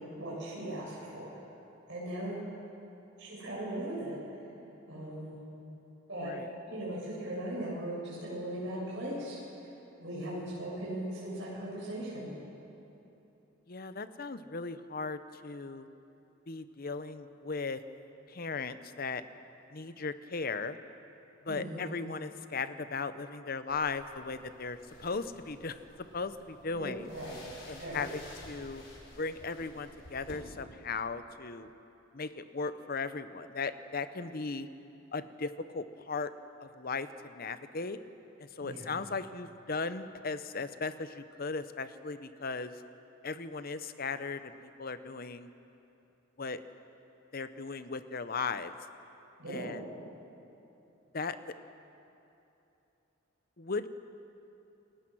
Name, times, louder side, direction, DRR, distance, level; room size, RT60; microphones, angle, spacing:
voice 1, 0.2-1.4 1.9-2.4 3.2-4.2 4.9-5.4 6.1-6.3 6.7-9.4 10.0-12.3 21.5-21.9 26.7-27.4 27.8-28.1 38.6-38.9 49.4-49.7, right 1 dB, 60° right, -6 dB, 7.5 m, -38 dB
voice 2, 13.7-15.9 16.5-17.8 18.3-19.2 19.7-20.8 21.5-25.8 26.1-27.1 27.7-28.2 28.5-28.8 29.2-31.7 32.1-34.7 35.1-36.3 36.6-38.0 38.6-42.7 43.2-44.5 44.8-45.5 46.4-46.6 47.3-48.7 49.5-49.8 51.1-51.5 53.6-53.9, left 4 dB, 45° left, 12 dB, 0.8 m, -37 dB
sound 1, 23.7-30.3, left 1 dB, 60° left, 5.3 m, -53 dB
28.5 x 19.0 x 6.2 m, 2.9 s
head